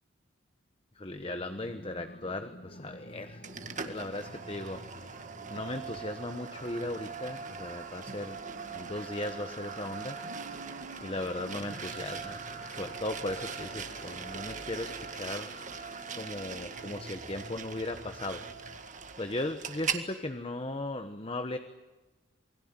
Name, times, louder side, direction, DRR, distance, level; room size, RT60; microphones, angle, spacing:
voice 1, 0.9-3.4 3.8-8.4 8.7-10.2 11.0-12.4 12.7-15.5 16.2-18.4 19.2-21.6, left 2 dB, 30° left, 8 dB, 1.2 m, -37 dB
sound 1, 1.2-18.8, left 1 dB, 55° left, 2.5 m, -52 dB
sound 2, 3.4-20.1, right 6 dB, 40° right, 1.9 m, -41 dB
sound 3, 10.2-12.2, right 2 dB, 90° right, 1.6 m, -48 dB
28.5 x 21.5 x 8.9 m, 1.2 s
head